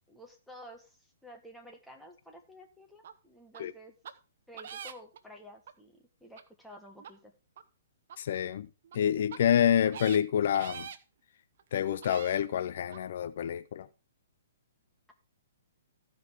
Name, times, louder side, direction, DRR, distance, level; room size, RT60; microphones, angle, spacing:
voice 1, 0.1-3.9 4.5-7.3, equal, ahead, 1.4 m, -52 dB
sound 1, 3.0-3.1 3.5-3.6 4.0-4.1 4.6-5.2 5.7-5.8 6.4-6.5 7.0-7.1 7.6-7.7 8.1-8.2 8.8-9.0 9.3-9.4 9.8-10.2 10.5-11.0 11.6-11.7 12.0-12.4 12.9-13.0, right 8 dB, 55° right, 1.0 m, -44 dB
voice 2, 8.2-8.7 8.9-10.9 11.7-13.9, left 9 dB, 55° left, 0.5 m, -27 dB
14.5 x 5.3 x 4.7 m
hypercardioid pair, 155°, 0 cm